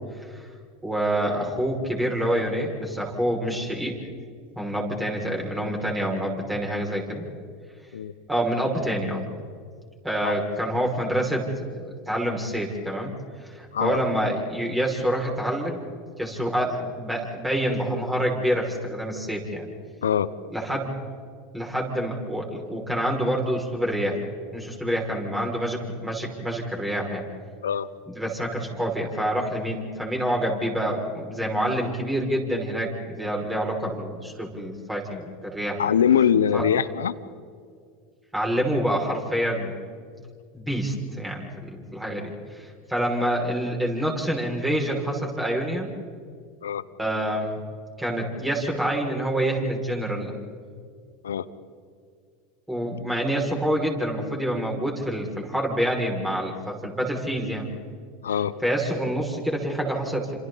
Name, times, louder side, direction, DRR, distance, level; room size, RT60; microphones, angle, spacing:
voice 1, 0.8-4.0 4.6-7.3 8.3-9.2 10.0-11.4 11.7-13.1 13.4-15.8 16.2-19.7 20.5-21.0 21.5-24.2 24.5-27.2 28.1-35.8 36.5-36.6 38.3-39.7 40.5-42.3 42.9-45.9 47.0-47.6 48.0-50.3 52.7-57.7 58.6-60.4, right 1 dB, 10° right, 0 dB, 6.2 m, -27 dB
voice 2, 35.8-37.1 46.6-46.8 51.2-51.5 58.2-58.5, left 8 dB, 85° left, 15 dB, 0.9 m, -22 dB
29.5 x 27.0 x 4.2 m, 2.1 s
hypercardioid pair, 90°, 0 cm